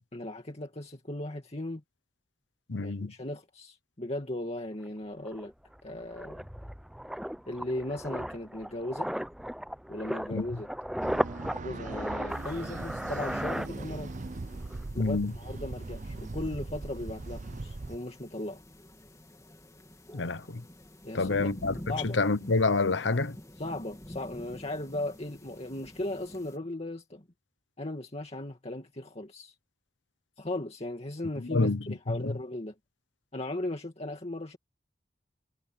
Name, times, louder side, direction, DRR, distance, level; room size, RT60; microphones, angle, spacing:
voice 1, 0.1-1.8 2.7-5.5 5.8-6.5 7.5-9.1 9.9-10.7 11.6-14.1 14.9-18.6 21.0-21.5 21.9-22.2 23.6-27.2 27.8-29.5 30.4-32.7 33.3-34.6, left 1 dB, 35° left, 2.3 m, -37 dB
voice 2, 2.7-3.1 10.3-10.5 15.0-15.3 20.1-20.6 21.1-21.8 22.1-23.4 31.5-31.8 32.1-32.4, left 3 dB, 90° left, 0.9 m, -27 dB
sound 1, 4.9-5.0 5.2-14.3 14.6-14.8, equal, ahead, 0.6 m, -36 dB
sound 2, 11.0-18.0, right 2 dB, 45° right, 0.6 m, -39 dB
sound 3, 12.3-26.6, equal, 20° left, 3.0 m, -49 dB
head